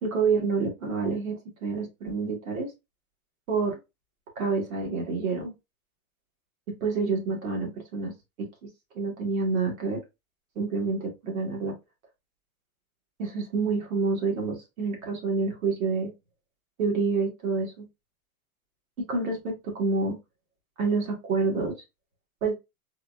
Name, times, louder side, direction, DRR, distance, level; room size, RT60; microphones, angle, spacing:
voice 1, 0.0-2.7 3.5-3.8 4.4-5.5 6.7-8.1 8.4-8.5 9.0-10.0 10.6-11.7 13.2-16.1 16.8-17.9 19.0-20.2 20.8-21.7 22.4-22.5, right 4 dB, 65° right, 1 dB, 1.9 m, -28 dB
4.2 x 2.5 x 2.5 m, 0.23 s
supercardioid pair, 175°, 44 cm